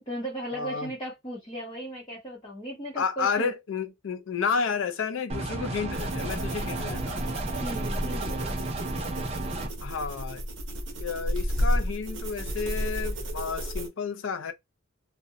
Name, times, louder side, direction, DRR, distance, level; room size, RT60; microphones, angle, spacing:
voice 1, 0.0-3.5 7.6-8.5, right 1 dB, 25° left, 0.8 m, -36 dB
voice 2, 0.5-0.9 3.0-7.2 9.8-10.4 11.0-14.5, left 5 dB, 75° left, 0.5 m, -31 dB
sound 1, 5.3-9.7, right 2 dB, 30° right, 0.5 m, -33 dB
sound 2, 5.9-13.9, equal, 65° right, 0.8 m, -32 dB
2.5 x 2.2 x 2.7 m
head